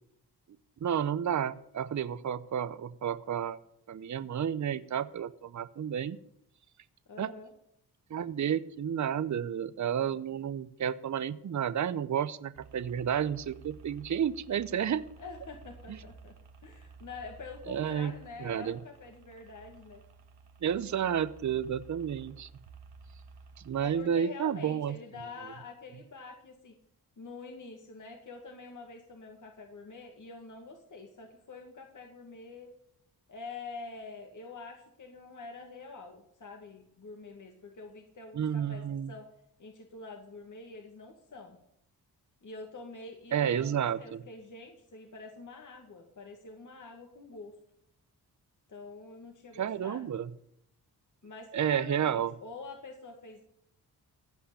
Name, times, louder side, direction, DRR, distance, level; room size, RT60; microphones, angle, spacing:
voice 1, 0.8-3.6 3.9-6.2 7.2-7.3 8.1-15.0 17.7-18.1 18.4-18.8 20.6-22.5 23.6-25.0 38.3-39.1 43.3-44.2 49.6-50.3 51.5-52.3, right 8 dB, 45° right, 16 dB, 0.7 m, -31 dB
voice 2, 7.1-7.5 15.2-16.3 16.6-20.0 23.8-26.7 27.2-32.7 33.3-38.8 39.1-39.3 39.6-41.6 42.4-47.5 48.7-50.2 51.2-53.4, left 3 dB, 50° left, 3 dB, 2.1 m, -46 dB
sound 1, 12.6-24.0, right 4 dB, 70° right, 1.7 m, -54 dB
15.5 x 5.6 x 8.4 m, 0.73 s
cardioid pair, 50°, 40 cm